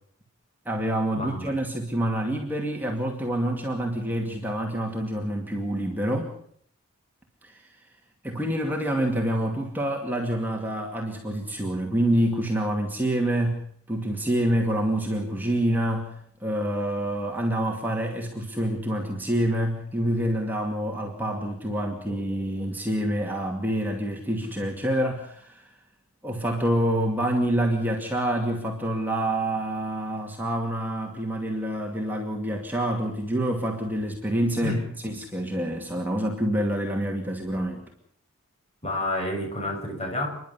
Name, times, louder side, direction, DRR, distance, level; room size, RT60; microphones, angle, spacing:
voice 1, 0.7-6.3 7.4-7.6 8.2-13.6 13.9-16.1 16.4-25.7 26.2-34.8 35.0-37.8, right 1 dB, 10° right, 0 dB, 2.3 m, -27 dB
voice 2, 38.8-40.3, left 1 dB, 30° left, 2 dB, 6.8 m, -29 dB
30.0 x 11.0 x 9.8 m, 0.65 s
head